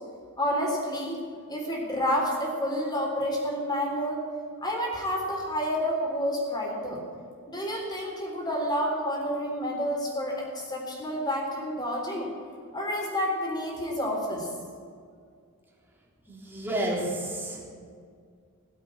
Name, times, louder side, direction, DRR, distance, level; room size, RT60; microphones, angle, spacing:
voice 1, 0.4-1.2 1.5-4.2 4.6-7.0 7.5-12.3 12.7-14.5, equal, 20° left, -1 dB, 3.7 m, -29 dB
voice 2, 16.3-17.8, right 1 dB, 10° right, -4 dB, 3.5 m, -31 dB
17.5 x 8.2 x 8.5 m, 2.1 s
head